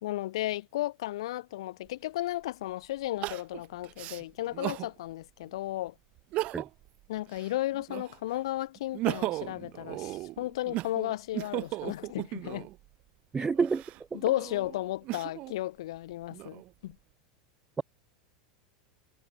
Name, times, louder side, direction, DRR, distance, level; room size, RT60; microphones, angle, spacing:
voice 1, 0.0-5.9 7.1-12.7 13.4-13.5 14.1-17.0, left 15 dB, 65° left, 4.6 m, -34 dB
Crying sobbing, 1.9-2.0 3.2-4.9 5.4-5.5 6.2-6.9 7.3-8.3 8.8-12.8 13.5-15.5 16.1-16.9, right 18 dB, 45° right, 1.5 m, -36 dB
voice 2, 13.3-13.8 14.1-14.2, right 5 dB, 20° right, 0.4 m, -28 dB
hypercardioid pair, 85°, 3 cm